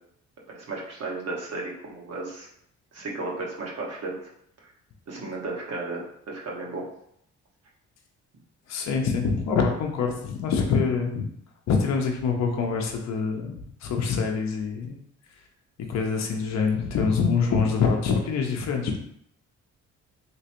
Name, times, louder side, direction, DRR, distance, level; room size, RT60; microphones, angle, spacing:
voice 1, 0.5-2.5 2.9-4.2 5.1-6.9, right 3 dB, 55° right, -2 dB, 1.1 m, -34 dB
voice 2, 8.7-11.3 11.7-15.0 15.9-19.0, left 5 dB, 60° left, 2 dB, 0.7 m, -25 dB
3.2 x 3.0 x 2.9 m, 0.69 s
cardioid pair, 90°, 30 cm